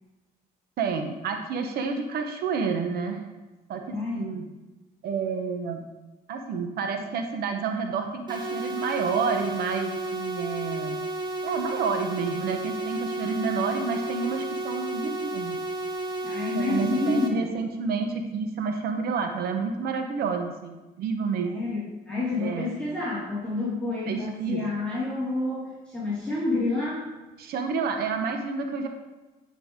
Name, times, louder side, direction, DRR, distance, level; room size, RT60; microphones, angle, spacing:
voice 1, 0.8-3.2 3.7-4.5 5.0-5.9 6.3-11.0 11.4-15.6 16.5-21.6 22.4-22.7 24.1-24.6 27.4-28.9, right 5 dB, 65° right, 5 dB, 0.9 m, -29 dB
voice 2, 3.9-4.3 16.2-17.5 21.4-27.1, left 2 dB, 5° left, -9 dB, 2.4 m, -29 dB
sound 1, 8.3-17.3, right 2 dB, 25° right, 1.2 m, -32 dB
9.5 x 5.4 x 3.6 m, 1.2 s
cardioid pair, 110°, 17 cm